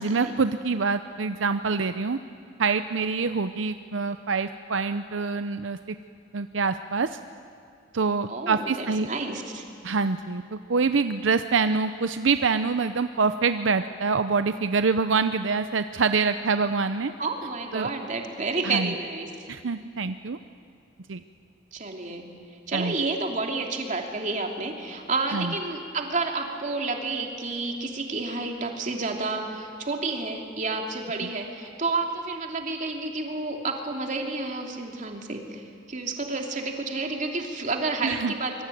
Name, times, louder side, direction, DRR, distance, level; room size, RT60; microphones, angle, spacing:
voice 1, 0.0-2.2 2.6-6.0 6.3-7.2 7.9-9.1 9.8-17.1 17.7-17.9 18.6-18.9 19.5-20.4 21.1-21.2 22.7-22.9 25.3-25.5 38.0-38.3, right 4 dB, 75° right, 10 dB, 0.7 m, -25 dB
voice 2, 8.3-9.6 17.2-19.3 21.7-22.3 22.7-35.6 35.9-38.6, right 3 dB, 40° right, 2 dB, 3.0 m, -30 dB
25.5 x 22.5 x 9.3 m, 2.4 s
head